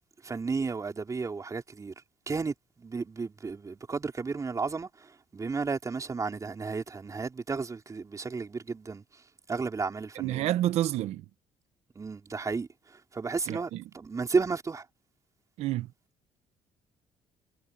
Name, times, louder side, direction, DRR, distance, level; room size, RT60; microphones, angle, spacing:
voice 1, 0.2-1.9 2.3-9.0 9.5-10.4 12.0-14.8, right 4 dB, 30° right, 4.2 m, -33 dB
voice 2, 10.1-11.2 13.5-13.8 15.6-15.9, right 13 dB, 75° right, 1.4 m, -29 dB
supercardioid pair, 80°, 11 cm